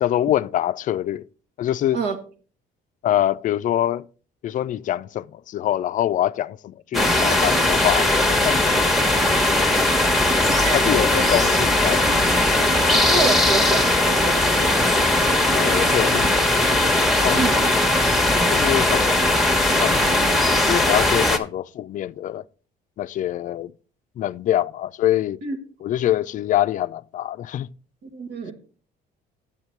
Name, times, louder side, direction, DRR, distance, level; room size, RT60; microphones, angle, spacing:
voice 1, 0.0-1.3 1.6-2.0 3.0-4.1 4.4-8.7 10.7-12.2 15.5-16.5 17.1-17.4 18.5-19.1 19.7-22.4 23.0-23.7 24.2-25.4 25.8-27.7, left 12 dB, 50° left, 0.4 m, -24 dB
sound 1, 6.9-21.4, left 1 dB, ahead, 1.0 m, -19 dB
voice 2, 10.6-11.3 12.9-14.8 17.4-17.7 25.4-25.6 28.0-28.5, right 4 dB, 90° right, 1.7 m, -28 dB
8.0 x 7.1 x 4.4 m
cardioid pair, 110°, 17 cm